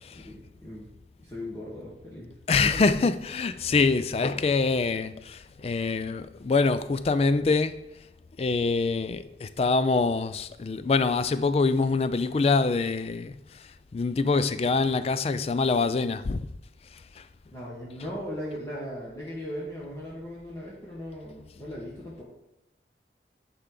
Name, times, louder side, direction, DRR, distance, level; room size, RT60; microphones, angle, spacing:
voice 1, 0.1-0.9 1.2-2.3 2.6-2.9 17.5-22.2, equal, 15° left, 1.3 m, -38 dB
voice 2, 2.5-7.8 8.4-16.5 16.9-17.3, left 4 dB, 35° left, 0.3 m, -25 dB
10.0 x 4.5 x 3.8 m
head